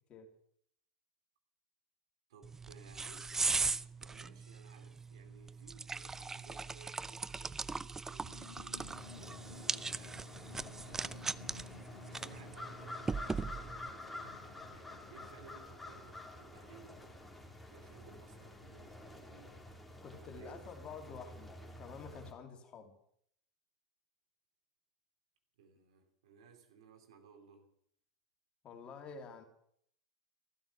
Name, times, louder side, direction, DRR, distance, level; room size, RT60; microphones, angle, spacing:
voice 1, 2.3-11.4 11.7-19.6 20.2-20.6 25.6-27.7, right 6 dB, 65° right, 5 dB, 3.1 m, -60 dB
sound 1, 2.4-13.9, right 4 dB, 15° right, 0.5 m, -39 dB
sound 2, 8.2-16.4, left 5 dB, 80° left, 1.3 m, -56 dB
sound 3, 8.9-22.3, left 2 dB, ahead, 3.0 m, -50 dB
voice 2, 20.0-23.0 28.6-29.4, left 5 dB, 35° left, 4 dB, 2.8 m, -49 dB
14.5 x 13.0 x 6.1 m, 0.68 s
figure-of-eight pair, 85°, 3 cm